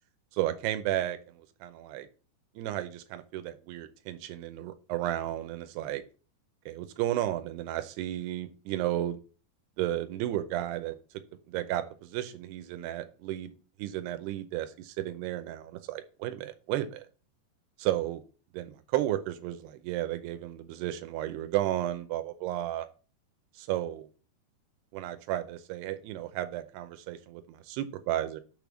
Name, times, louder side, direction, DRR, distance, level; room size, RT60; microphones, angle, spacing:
voice 1, 0.3-2.1 2.6-6.0 6.7-9.2 9.8-11.0 11.5-13.5 13.8-17.1 17.8-18.2 18.5-22.9 23.6-24.1 24.9-28.4, right 13 dB, 80° right, 9 dB, 2.7 m, -33 dB
6.5 x 3.5 x 6.1 m, 0.36 s
omnidirectional pair, 4.9 m